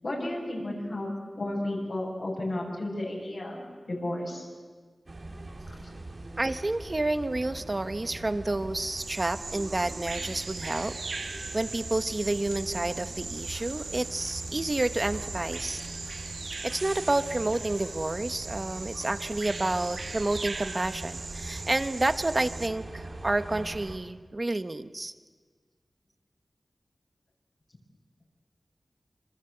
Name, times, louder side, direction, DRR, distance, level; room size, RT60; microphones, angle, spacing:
voice 1, 0.0-1.1 1.4-4.5 5.8-5.9 12.8-12.9, left 1 dB, 60° left, -2 dB, 6.7 m, -33 dB
sound 1, 5.1-24.0, right 2 dB, 50° right, 2.9 m, -42 dB
voice 2, 6.4-10.9 11.5-15.8 16.6-25.1, right 2 dB, 35° right, 11 dB, 1.2 m, -29 dB
Bird vocalization bird call bird song, 9.0-22.7, right 3 dB, 70° right, 1.5 m, -39 dB
27.0 x 25.5 x 8.0 m, 1.5 s
wide cardioid pair, 90°, 0 cm